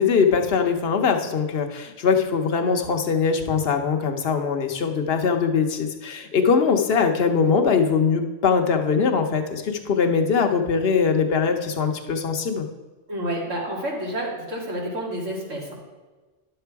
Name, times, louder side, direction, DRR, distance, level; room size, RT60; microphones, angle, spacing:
voice 1, 0.0-12.6, left 5 dB, 55° left, 5 dB, 1.0 m, -21 dB
voice 2, 13.1-15.7, right 1 dB, 80° right, -2 dB, 2.5 m, -29 dB
10.5 x 6.8 x 4.6 m, 1.3 s
omnidirectional pair, 1.3 m